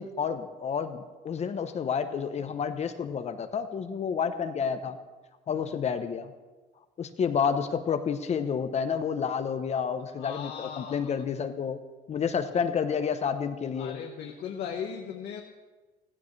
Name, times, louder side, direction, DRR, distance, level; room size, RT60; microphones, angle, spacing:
voice 1, 0.0-5.0 5.5-6.3 7.0-11.8 12.1-14.0, left 6 dB, 40° left, 9 dB, 0.8 m, -30 dB
voice 2, 10.2-11.2 13.8-15.4, left 7 dB, 75° left, 1 dB, 1.3 m, -37 dB
16.0 x 15.5 x 3.3 m, 1.3 s
cardioid pair, 110°, 17 cm